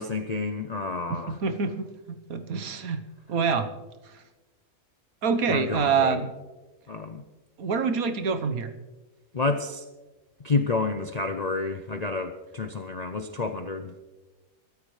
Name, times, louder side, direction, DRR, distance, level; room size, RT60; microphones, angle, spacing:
voice 1, 0.0-1.4 5.5-6.2 6.9-7.2 9.3-9.8 10.4-13.9, left 3 dB, 50° left, 7 dB, 0.5 m, -29 dB
voice 2, 1.1-3.0 3.3-3.7 5.2-6.3 7.6-8.7, right 5 dB, 70° right, 9 dB, 1.5 m, -26 dB
22.5 x 13.5 x 3.2 m, 1.2 s
omnidirectional pair, 1.6 m